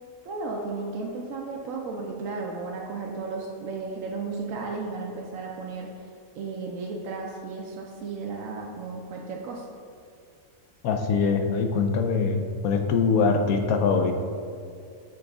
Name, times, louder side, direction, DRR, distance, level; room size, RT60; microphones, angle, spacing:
voice 1, 0.2-5.9 6.3-9.7, right 4 dB, 75° right, -1 dB, 1.0 m, -34 dB
voice 2, 10.8-14.1, left 5 dB, 90° left, 5 dB, 1.1 m, -23 dB
7.8 x 3.8 x 3.5 m, 2.4 s
omnidirectional pair, 1.4 m